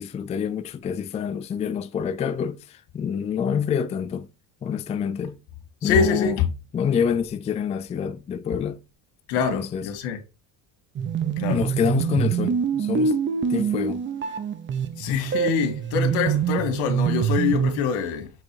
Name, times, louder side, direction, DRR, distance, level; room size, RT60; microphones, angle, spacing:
voice 1, 0.0-4.3 4.6-5.4 5.8-6.4 6.7-8.8 9.5-9.9 11.5-13.2 13.5-14.0, left 7 dB, 15° left, 0.3 m, -27 dB
voice 2, 5.8-6.5 9.3-10.2 11.4-11.6 15.0-18.3, left 6 dB, 90° left, 2.0 m, -25 dB
sound 1, 10.9-17.8, right 7 dB, 25° right, 0.8 m, -25 dB
7.8 x 3.4 x 4.7 m
cardioid pair, 140°, 43 cm